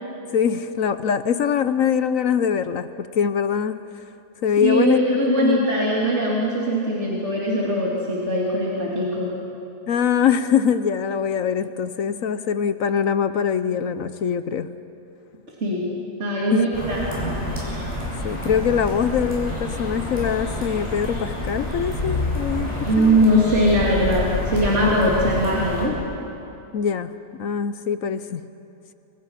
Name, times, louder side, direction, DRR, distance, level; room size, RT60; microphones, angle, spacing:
voice 1, 0.3-3.8 4.4-5.0 5.4-5.7 9.9-14.7 16.5-16.7 18.2-23.2 26.7-28.5, left 7 dB, 60° left, 12 dB, 1.1 m, -23 dB
voice 2, 4.6-9.3 15.6-15.9 16.2-17.0 22.9-25.9, equal, 45° right, -5 dB, 3.6 m, -20 dB
sound 1, 16.7-25.9, left 1 dB, 20° left, 6.4 m, -28 dB
29.0 x 25.0 x 5.8 m, 2.8 s
omnidirectional pair, 1.7 m